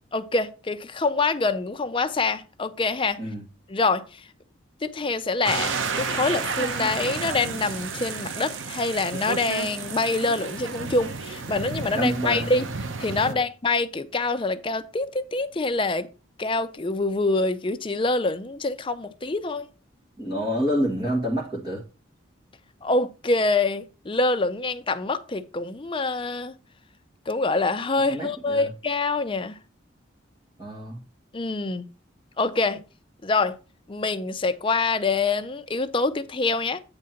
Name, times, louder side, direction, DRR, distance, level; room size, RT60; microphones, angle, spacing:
voice 1, 0.1-3.2 3.7-4.3 4.8-12.6 13.0-16.1 16.4-19.7 22.8-26.6 27.3-29.6 31.3-31.9 32.4-32.8 33.2-33.5 33.9-36.8, left 3 dB, 25° left, 0.5 m, -25 dB
sound 1, 5.4-13.3, right 4 dB, 75° right, 0.8 m, -31 dB
voice 2, 11.9-12.6 13.2-13.4 20.2-21.8 28.1-28.7 30.6-31.0, equal, 20° right, 1.5 m, -28 dB
8.9 x 3.7 x 5.7 m
head